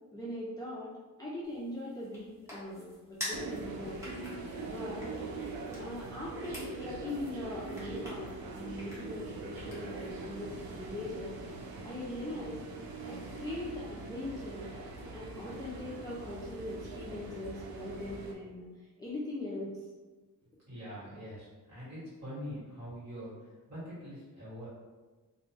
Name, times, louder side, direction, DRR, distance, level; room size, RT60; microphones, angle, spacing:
voice 1, 0.1-0.9 1.2-4.0 4.7-5.1 5.8-11.3 11.8-12.6 13.1-14.7 15.1-19.8, left 1 dB, 10° left, -7 dB, 0.3 m, -41 dB
sound 1, 1.4-10.1, equal, 10° right, 0.8 m, -48 dB
sound 2, 3.3-18.3, right 3 dB, 85° right, 0.5 m, -42 dB
voice 2, 20.4-24.7, equal, 50° right, -9 dB, 1.5 m, -44 dB
2.4 x 2.1 x 3.3 m, 1.2 s
wide cardioid pair, 160°, 34 cm